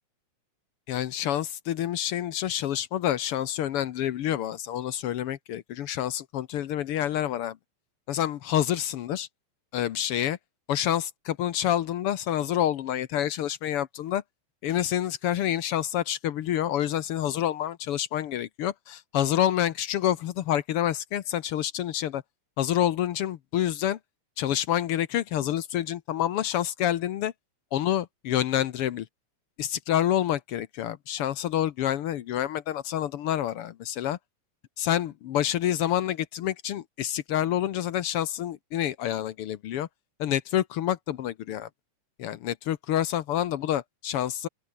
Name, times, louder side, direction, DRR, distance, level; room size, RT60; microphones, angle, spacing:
voice 1, 0.9-7.6 8.1-9.3 9.7-10.4 10.7-14.2 14.6-22.2 22.6-24.0 24.4-27.3 27.7-29.1 29.6-34.2 34.8-39.9 40.2-41.7 42.2-44.5, left 11 dB, 65° left, 1.4 m, -28 dB
open air
omnidirectional pair, 3.6 m